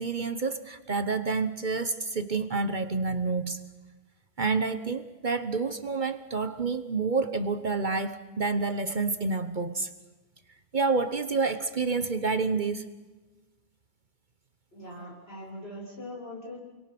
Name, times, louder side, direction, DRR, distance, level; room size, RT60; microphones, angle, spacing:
voice 1, 0.0-3.6 4.4-9.9 10.7-12.9, right 4 dB, 45° right, 11 dB, 1.2 m, -28 dB
voice 2, 14.7-16.6, left 1 dB, 65° left, -2 dB, 8.0 m, -41 dB
29.5 x 23.0 x 6.1 m, 1.2 s
omnidirectional pair, 1.1 m